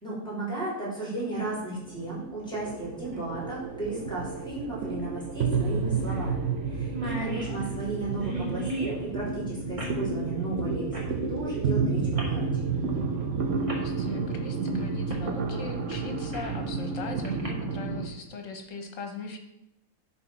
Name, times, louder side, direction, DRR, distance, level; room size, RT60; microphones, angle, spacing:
voice 1, 0.0-12.5, right 2 dB, 5° left, -7 dB, 4.0 m, -35 dB
sound 1, 1.3-18.1, right 4 dB, 60° right, 1.2 m, -31 dB
sound 2, 3.1-3.2 5.0-5.1 5.4-5.5 6.1-6.3 6.6-6.7 6.8-9.0 9.8-10.0 10.9-11.1 12.1-12.4 13.2-13.3 13.7-13.8 15.1-15.3 15.7-16.6 17.2-17.5, right 1 dB, 25° right, 1.8 m, -36 dB
voice 2, 7.2-7.6 13.7-19.4, left 4 dB, 65° left, 5 dB, 1.6 m, -40 dB
11.0 x 4.3 x 6.0 m, 0.85 s
omnidirectional pair, 1.5 m